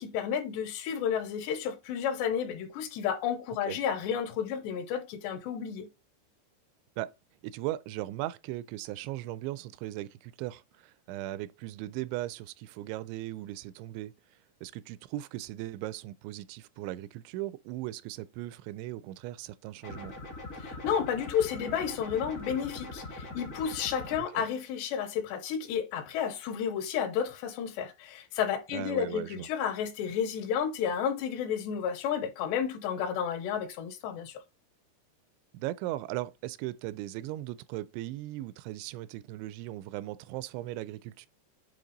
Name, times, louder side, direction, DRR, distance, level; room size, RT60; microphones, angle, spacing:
voice 1, 0.0-5.9 20.6-34.4, left 8 dB, 80° left, 2.9 m, -31 dB
voice 2, 7.4-14.1 14.6-20.2 24.3-24.5 28.7-29.5 35.5-41.3, right 15 dB, 85° right, 2.8 m, -38 dB
sound 1, 19.8-24.2, left 2 dB, 60° left, 0.9 m, -42 dB
8.6 x 3.2 x 3.9 m
omnidirectional pair, 5.2 m